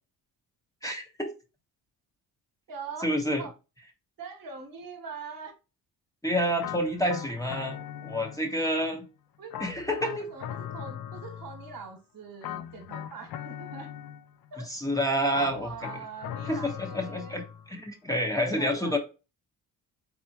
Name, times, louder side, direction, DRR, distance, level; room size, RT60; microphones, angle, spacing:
voice 1, 0.8-1.3 3.0-3.4 6.2-9.1 9.6-10.3 14.7-15.9 16.5-19.0, equal, 10° left, 1.0 m, -29 dB
voice 2, 2.7-3.1 3.4-3.5 4.2-5.5 7.7-8.2 8.5-8.7 9.4-9.7 10.2-13.9 14.5-14.7 15.5-17.4 18.4-19.0, right 5 dB, 55° right, 1.3 m, -43 dB
sound 1, 6.6-8.7 9.5-11.9 12.4-14.5 15.3-17.7, left 9 dB, 65° left, 0.6 m, -40 dB
4.2 x 3.4 x 2.9 m
cardioid pair, 85°, 40 cm